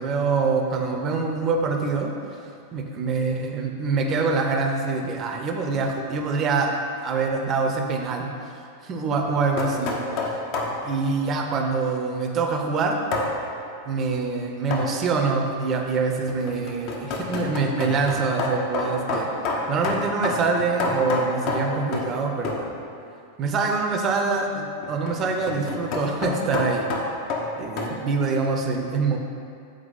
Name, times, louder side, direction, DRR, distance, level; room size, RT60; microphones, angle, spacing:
voice 1, 0.0-6.7 7.0-8.3 8.8-10.0 10.2-10.4 10.8-13.0 13.8-19.3 19.7-22.7 23.4-26.9 27.6-29.2, right 4 dB, 30° right, 2 dB, 0.8 m, -25 dB
sound 1, 9.2-10.8 13.1-13.3 14.7-15.0 16.3-22.2 22.4-22.7 24.8-27.9, left 3 dB, 45° left, 0.9 m, -28 dB
7.8 x 4.6 x 4.1 m, 2.4 s
figure-of-eight pair, 90°, 0 cm